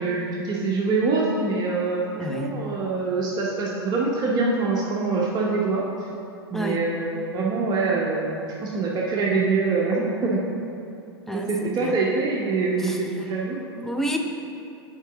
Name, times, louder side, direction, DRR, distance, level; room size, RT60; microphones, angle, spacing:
voice 1, 0.0-6.1 6.5-10.4 11.3-13.6, right 3 dB, 30° right, -3 dB, 0.8 m, -25 dB
voice 2, 2.2-2.6 6.5-6.8 11.3-11.9 12.8-13.0 13.8-14.2, equal, 5° left, 3 dB, 0.6 m, -29 dB
5.5 x 4.5 x 5.9 m, 2.7 s
figure-of-eight pair, 95°, 13 cm